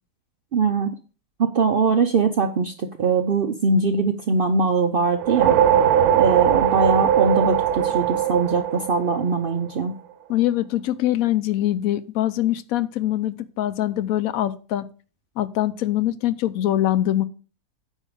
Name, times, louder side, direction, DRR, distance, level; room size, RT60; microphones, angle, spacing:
voice 1, 0.5-0.9 1.4-5.6 6.1-9.9, right 4 dB, 60° right, 7 dB, 0.6 m, -21 dB
sound 1, 5.1-9.7, right 10 dB, 90° right, 1.1 m, -20 dB
voice 2, 10.3-14.9 15.4-17.3, left 13 dB, 75° left, 14 dB, 1.0 m, -23 dB
9.0 x 4.6 x 4.9 m, 0.36 s
omnidirectional pair, 1.6 m